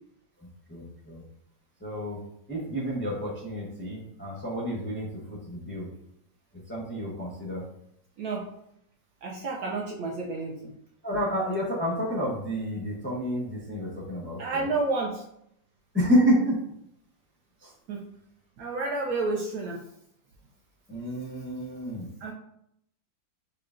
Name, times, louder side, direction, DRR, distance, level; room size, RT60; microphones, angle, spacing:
voice 1, 0.7-1.2 1.8-2.2 2.5-5.9 6.7-7.6 11.0-14.7 15.9-16.6 17.6-17.7 20.9-22.1, equal, 15° left, -5 dB, 0.4 m, -29 dB
voice 2, 9.2-10.7 14.4-15.2 17.9-18.0 18.6-19.8 22.2-22.3, right 3 dB, 70° right, -2 dB, 0.9 m, -30 dB
6.4 x 2.3 x 2.5 m, 0.73 s
omnidirectional pair, 2.0 m